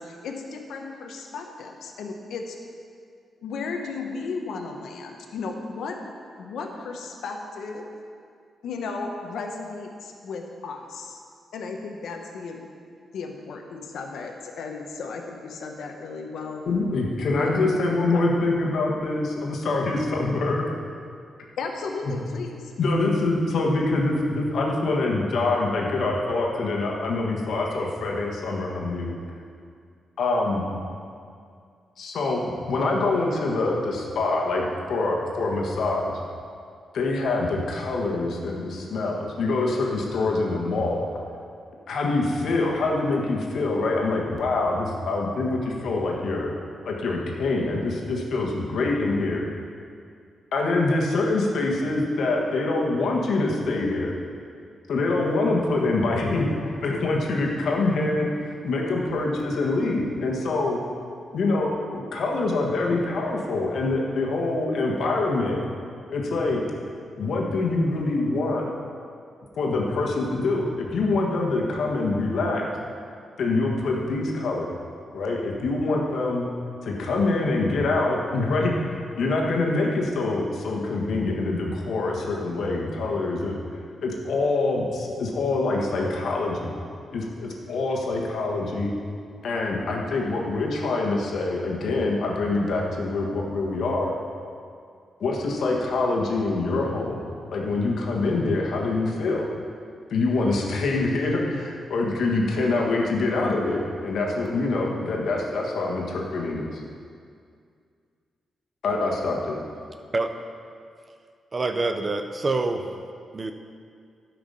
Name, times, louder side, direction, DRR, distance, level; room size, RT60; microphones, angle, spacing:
voice 1, 0.0-2.6 3.4-6.0 6.4-7.9 8.6-11.2 11.5-12.7 13.1-16.6 17.4-17.7 18.1-18.5 21.6-22.7, left 4 dB, 80° left, 3 dB, 1.0 m, -35 dB
voice 2, 16.7-20.6 22.1-22.2 22.8-29.1 30.2-30.7 32.0-36.1 36.9-41.2 41.9-46.5 46.8-49.4 50.5-54.1 54.9-60.8 61.3-65.6 66.1-66.6 67.2-68.7 69.6-72.7 73.4-74.7 75.1-76.5 76.8-83.6 84.0-86.8 87.1-88.9 89.4-94.2 95.2-99.4 100.1-106.8 108.8-109.6, left 2 dB, 60° left, -1 dB, 1.5 m, -25 dB
voice 3, 111.5-112.9 113.3-113.5, right 3 dB, 25° right, 7 dB, 0.5 m, -26 dB
12.5 x 5.9 x 5.6 m, 2.3 s
wide cardioid pair, 170°, 0 cm